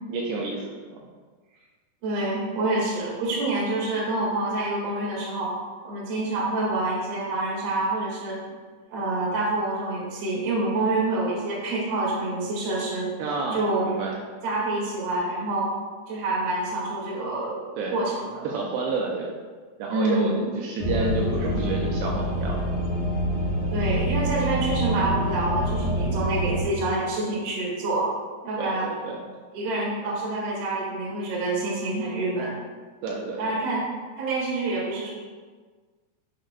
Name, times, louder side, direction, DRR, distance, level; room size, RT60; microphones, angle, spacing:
voice 1, 0.1-1.0 10.8-10.9 13.2-14.2 17.8-18.0 18.4-19.3 19.8-22.6 28.6-29.2 33.0-33.7, right 3 dB, 80° right, -2 dB, 2.7 m, -30 dB
voice 2, 2.0-5.5 5.8-8.4 8.9-13.1 13.5-13.9 14.4-15.7 16.1-17.6 17.9-18.5 19.9-20.5 23.7-28.1 28.4-28.9 29.5-32.5 33.4-33.9 34.2-35.1, right 2 dB, 45° right, -5 dB, 2.2 m, -27 dB
sound 1, 20.8-26.6, equal, 55° left, 3.6 m, -26 dB
10.0 x 6.5 x 2.2 m, 1.5 s
omnidirectional pair, 5.1 m